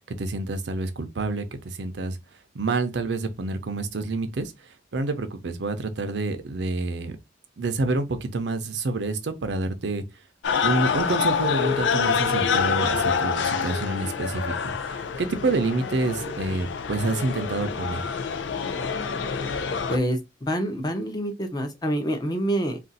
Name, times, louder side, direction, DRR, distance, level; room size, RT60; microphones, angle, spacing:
voice 1, 0.2-1.4 1.8-2.2 2.5-4.5 4.9-7.2 7.6-10.0 10.6-14.7 15.2-18.0, right 3 dB, 70° right, 0.5 m, -27 dB
sound 1, 10.4-20.0, left 6 dB, 85° left, 0.5 m, -26 dB
voice 2, 19.9-22.8, equal, 20° left, 0.6 m, -27 dB
2.5 x 2.3 x 4.0 m
head